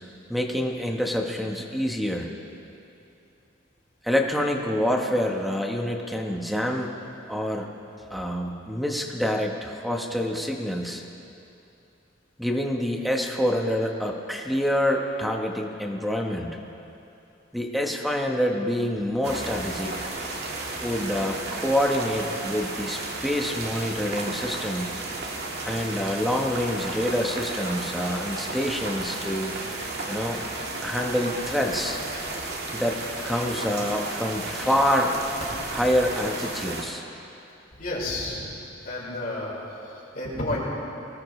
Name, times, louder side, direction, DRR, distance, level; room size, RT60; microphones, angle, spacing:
voice 1, 0.3-2.3 4.0-6.9 7.3-7.7 8.1-11.0 12.4-16.6 17.5-20.1 20.8-24.9 25.6-29.5 30.1-30.4 30.8-32.0 32.7-35.1 35.7-37.0, equal, ahead, 1 dB, 1.2 m, -26 dB
sound 1, 19.2-36.8, right 2 dB, 55° right, 1.9 m, -33 dB
voice 2, 37.8-38.5 38.8-40.6, left 1 dB, 45° left, -5 dB, 4.7 m, -31 dB
23.0 x 19.0 x 3.3 m, 2.8 s
head